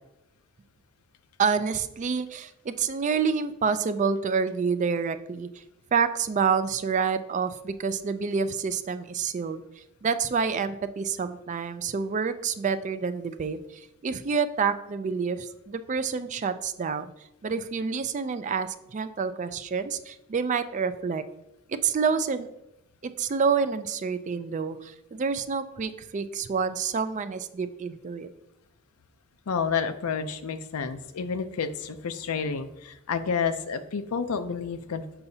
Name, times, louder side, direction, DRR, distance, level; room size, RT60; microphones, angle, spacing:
voice 1, 1.4-5.6 5.9-17.0 17.4-21.2 21.7-22.5 23.0-28.3, right 5 dB, 35° right, 11 dB, 0.3 m, -28 dB
voice 2, 29.5-35.1, left 6 dB, 85° left, 10 dB, 0.5 m, -30 dB
6.8 x 5.7 x 2.7 m, 0.89 s
head